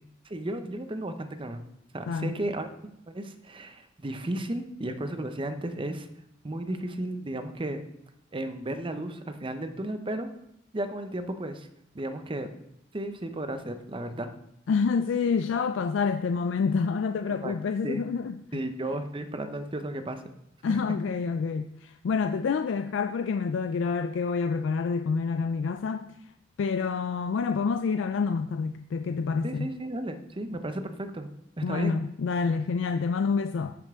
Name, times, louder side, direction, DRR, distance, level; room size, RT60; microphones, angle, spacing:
voice 1, 0.2-1.7 1.9-6.1 6.4-7.8 8.3-10.3 10.7-11.7 11.9-12.5 12.9-14.3 17.3-17.5 17.8-18.0 18.5-20.2 20.7-21.0 29.4-31.3 31.6-32.0, right 1 dB, 25° right, 0.7 m, -34 dB
voice 2, 14.7-18.6 20.6-26.1 26.6-29.7 31.6-33.8, left 5 dB, 75° left, 0.3 m, -28 dB
10.5 x 5.3 x 3.6 m
head